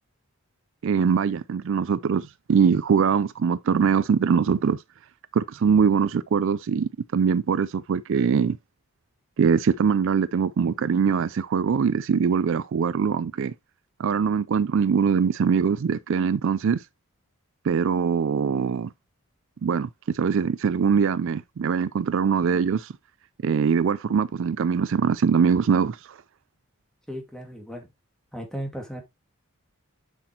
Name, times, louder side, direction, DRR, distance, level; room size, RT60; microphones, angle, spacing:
voice 1, 0.8-4.8 5.3-8.6 9.4-13.5 14.0-16.8 17.6-18.9 19.6-22.9 23.4-26.2, right 6 dB, 60° right, 0.4 m, -22 dB
voice 2, 27.1-27.9 28.3-29.0, equal, 5° left, 2.1 m, -35 dB
7.9 x 6.0 x 2.9 m
head